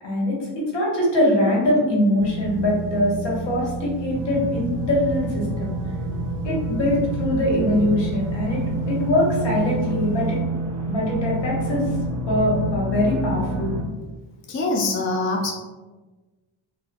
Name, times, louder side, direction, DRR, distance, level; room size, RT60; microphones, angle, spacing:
voice 1, 0.0-5.7 6.4-10.4 10.9-11.9 12.3-13.7, left 1 dB, 65° left, -4 dB, 1.1 m, -22 dB
sound 1, 2.2-10.4, right 3 dB, 10° right, 1.2 m, -33 dB
sound 2, 4.1-13.8, right 2 dB, 40° right, 0.5 m, -28 dB
voice 2, 14.5-15.5, left 2 dB, 30° left, 0 dB, 0.3 m, -24 dB
2.7 x 2.0 x 2.5 m, 1.2 s
cardioid pair, 75°, 47 cm